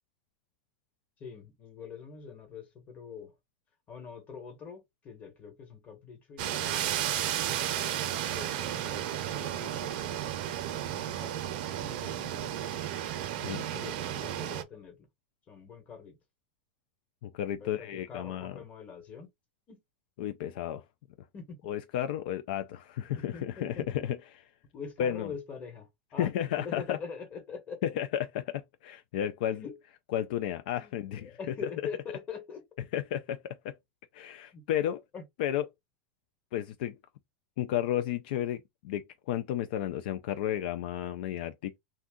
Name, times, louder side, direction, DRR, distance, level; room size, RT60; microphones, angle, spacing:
voice 1, 1.2-3.3 3.9-7.7 8.0-10.3 10.8-12.8 13.7-15.1 15.5-16.2 17.6-19.3 19.7-19.8 21.3-21.6 23.1-24.0 24.7-26.3 26.6-27.8 29.5-29.8 30.8-30.9 31.2-32.6 34.5-34.6 35.1-35.2, left 6 dB, 30° left, 1.2 m, -44 dB
sound 1, 6.4-14.6, right 11 dB, 60° right, 0.6 m, -33 dB
voice 2, 17.2-18.6 20.2-20.9 21.6-24.5 25.0-25.3 26.2-27.0 27.8-29.7 30.1-31.7 32.9-33.8 34.1-35.0 35.4-35.7 36.5-37.0 37.6-41.8, left 11 dB, 65° left, 0.4 m, -33 dB
2.6 x 2.3 x 3.6 m
supercardioid pair, 140°, 5 cm